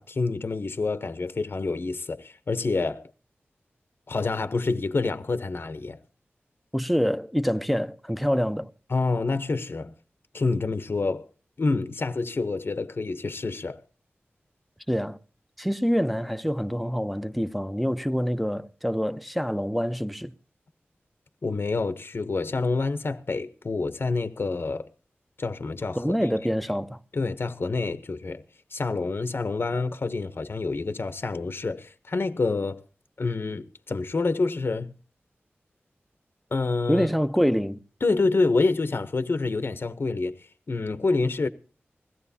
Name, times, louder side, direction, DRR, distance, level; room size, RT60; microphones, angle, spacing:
voice 1, 0.0-3.1 4.1-6.0 8.9-9.9 10.3-11.3 11.6-13.8 21.4-24.9 25.4-26.0 27.1-28.4 28.7-32.8 33.2-34.9 36.5-37.1 38.0-41.5, left 3 dB, 55° left, 0.8 m, -27 dB
voice 2, 6.7-8.7 14.9-15.2 15.6-20.3 26.0-27.0 36.9-37.8, equal, ahead, 0.8 m, -26 dB
21.0 x 16.5 x 2.8 m
wide cardioid pair, 70°, 4 cm